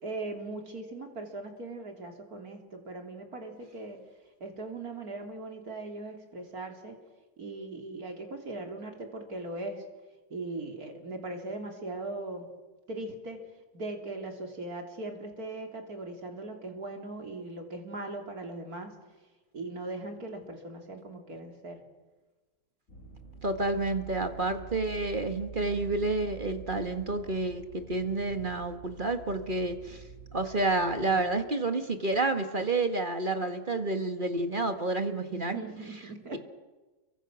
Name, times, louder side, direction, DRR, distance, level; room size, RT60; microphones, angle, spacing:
voice 1, 0.0-4.0 4.4-7.0 7.4-9.9 10.3-12.5 12.9-13.4 13.7-18.9 19.5-21.8 31.0-31.3 35.3-36.4, right 2 dB, 45° right, 3 dB, 3.8 m, -39 dB
sound 1, 22.9-31.3, right 6 dB, 35° left, 6.4 m, -47 dB
voice 2, 23.4-30.0 30.3-35.6, right 2 dB, 25° right, 7 dB, 1.6 m, -29 dB
29.5 x 24.0 x 6.4 m, 1.2 s
omnidirectional pair, 2.2 m